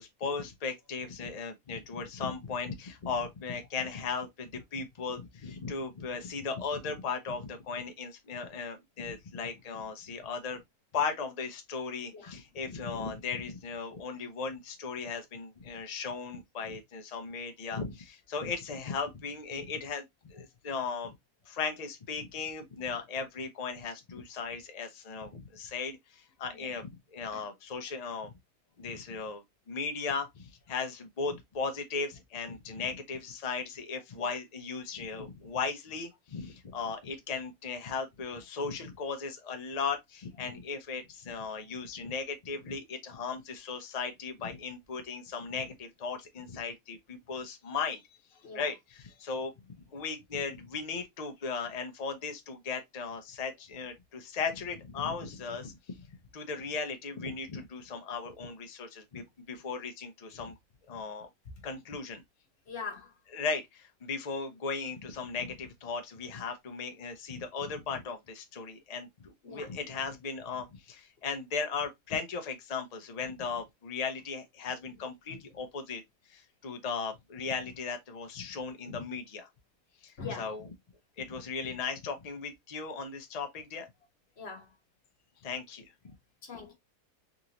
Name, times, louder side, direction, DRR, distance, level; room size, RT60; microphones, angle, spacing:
voice 1, 0.0-10.6 10.9-20.0 20.3-21.1 21.5-28.3 28.8-48.0 48.5-49.5 49.9-56.0 56.3-60.5 60.9-61.3 61.6-62.2 63.3-76.0 76.3-79.5 80.0-80.7 81.2-83.9 85.4-85.8, left 5 dB, 70° left, 0.3 m, -37 dB
voice 2, 62.7-63.1 69.4-69.7 75.3-75.4 78.9-79.0 80.2-80.5 84.4-84.7 86.4-86.7, left 5 dB, 45° left, 1.2 m, -42 dB
3.7 x 2.5 x 2.8 m
omnidirectional pair, 1.7 m